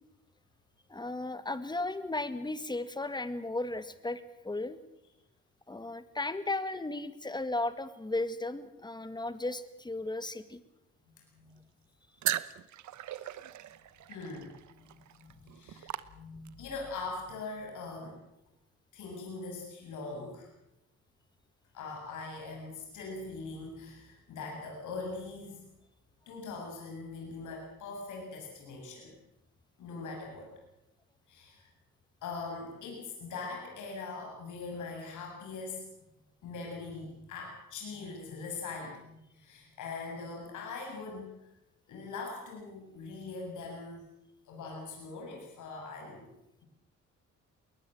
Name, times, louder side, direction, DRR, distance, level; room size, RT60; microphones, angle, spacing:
voice 1, 0.9-4.8 5.7-10.6, left 2 dB, 15° left, 12 dB, 1.8 m, -35 dB
voice 2, 11.2-11.5 13.2-13.3 14.1-18.2 18.9-20.5 21.7-25.6 26.3-29.1 29.8-30.5 31.3-31.7 32.2-35.9 36.4-41.5 41.9-44.0 44.5-46.3, left 3 dB, 80° left, 0 dB, 7.6 m, -42 dB
sound 1, 12.2-16.7, right 13 dB, 70° right, 1.0 m, -38 dB
21.0 x 20.0 x 7.7 m, 0.87 s
cardioid pair, 90°, 30 cm